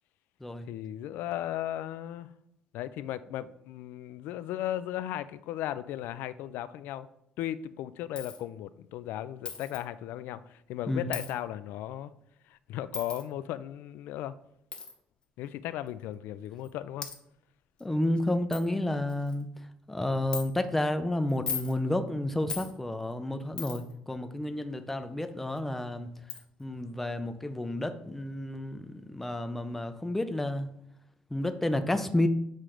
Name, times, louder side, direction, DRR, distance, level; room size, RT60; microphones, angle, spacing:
voice 1, 0.7-2.3 2.7-7.1 7.4-12.1 12.5-14.4 15.4-17.1, left 12 dB, 80° left, 15 dB, 0.3 m, -36 dB
Coin (dropping), 8.2-8.4 9.5-9.8 11.1-11.3 12.9-13.2 14.7-14.9 15.9-16.0 16.6-16.7 17.0-17.2 17.8-17.9 18.2-18.3 18.5-18.7 19.1-19.4 20.3-20.5 21.3-21.7 22.5-22.7 23.6-23.9 25.6-25.7 26.3-26.4, left 6 dB, 30° left, 0.8 m, -37 dB
voice 2, 17.8-19.5 19.9-26.1 26.6-30.7 31.3-32.3, left 1 dB, 5° left, 8 dB, 0.5 m, -31 dB
7.5 x 3.2 x 5.0 m, 0.77 s
cardioid pair, 160°, 3 cm